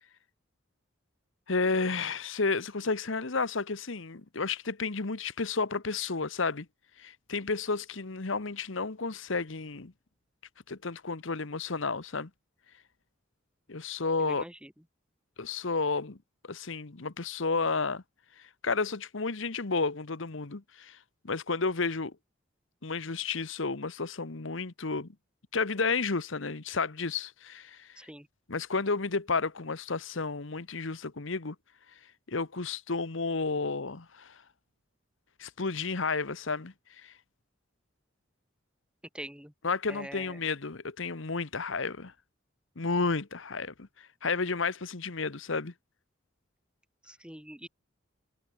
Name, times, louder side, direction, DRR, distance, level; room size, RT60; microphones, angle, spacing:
voice 1, 1.5-6.7 7.0-9.9 10.7-12.3 13.7-14.4 15.4-16.2 16.4-18.0 18.4-21.0 21.2-22.1 22.8-25.1 25.5-28.0 28.5-31.5 32.3-34.4 35.4-37.1 39.6-42.1 42.8-45.7, left 4 dB, 65° left, 1.2 m, -32 dB
voice 2, 14.2-14.7 28.0-28.3 39.1-39.5 39.9-40.4 47.0-47.7, right 1 dB, 5° right, 2.9 m, -44 dB
head